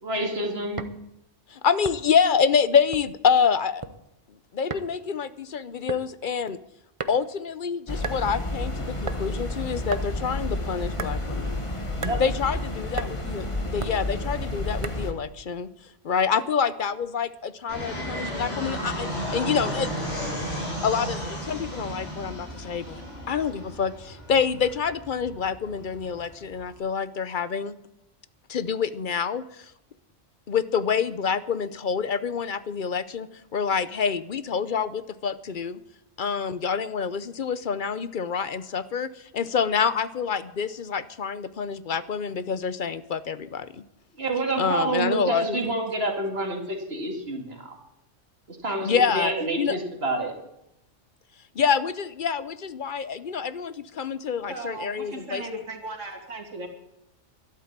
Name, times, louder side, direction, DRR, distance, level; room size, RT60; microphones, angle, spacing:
voice 1, 0.0-0.9 12.0-12.2 44.2-47.8 48.5-50.3, right 2 dB, 55° right, 3 dB, 2.5 m, -28 dB
sound 1, 0.8-1.0 1.8-2.2 2.9-3.2 3.6-4.0 4.7-4.9 5.9-6.1 7.0-7.4 8.0-8.2 9.1-9.2 9.9-10.1 10.9-11.2 12.0-12.2 13.0-13.1 13.8-14.0 14.8-15.1, right 4 dB, 30° right, 0.7 m, -34 dB
voice 2, 1.5-3.8 4.5-6.6 7.1-11.6 12.2-15.7 16.0-20.1 20.8-23.0 23.3-27.8 28.5-29.7 30.5-35.8 36.2-43.8 44.6-45.7 48.8-49.8 51.5-55.6, left 6 dB, 50° left, 14 dB, 0.8 m, -27 dB
sound 2, 7.9-15.1, left 1 dB, 25° left, 1.4 m, -30 dB
Fixed-wing aircraft airplane, 17.7-26.7, equal, 75° left, 7.1 m, -34 dB
voice 3, 54.5-56.7, right 2 dB, 85° right, 3 dB, 2.9 m, -37 dB
12.5 x 12.0 x 7.4 m, 0.84 s
omnidirectional pair, 1.2 m